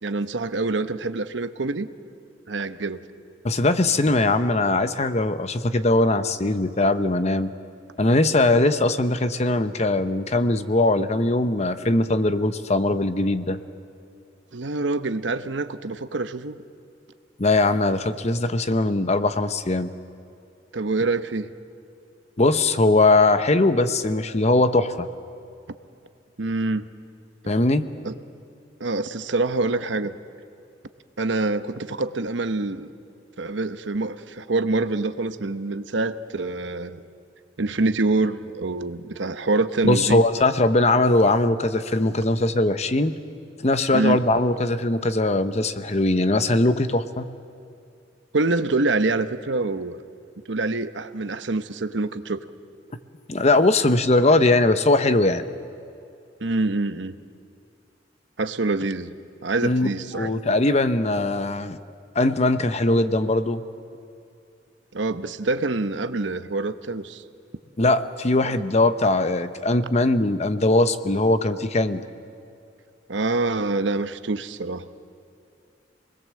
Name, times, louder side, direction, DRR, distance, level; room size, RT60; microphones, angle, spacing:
voice 1, 0.0-1.9 2.5-3.1 14.5-16.6 20.7-21.5 26.4-26.9 28.0-28.1 28.8-30.2 31.2-32.9 33.4-37.0 37.6-40.2 43.9-44.2 48.3-50.0 50.5-52.4 56.4-57.1 58.4-59.1 59.4-60.3 64.9-67.2 73.1-74.9, right 3 dB, 80° right, 11 dB, 1.0 m, -25 dB
voice 2, 3.4-7.5 8.0-13.6 17.4-19.9 22.4-25.1 27.5-27.9 39.8-43.2 43.6-47.3 53.3-55.4 59.6-59.9 60.1-61.8 62.1-63.6 67.8-72.0, left 2 dB, 35° left, 11 dB, 0.9 m, -20 dB
27.0 x 20.5 x 7.7 m, 2.5 s
head